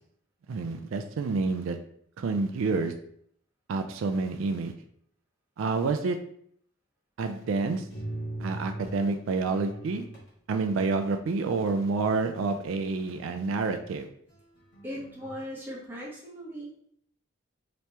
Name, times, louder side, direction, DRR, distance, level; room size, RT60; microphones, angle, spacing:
voice 1, 0.5-1.8 2.2-2.9 3.7-4.7 5.6-6.2 7.2-7.8 8.4-10.1 10.5-14.1, right 4 dB, 85° right, 6 dB, 0.4 m, -28 dB
sound 1, 7.4-9.0 9.4-10.3 11.4-13.1 14.3-15.3, right 1 dB, 65° left, 1.2 m, -41 dB
voice 2, 14.8-16.7, equal, 10° right, -5 dB, 0.9 m, -38 dB
3.0 x 2.8 x 3.3 m, 0.65 s
head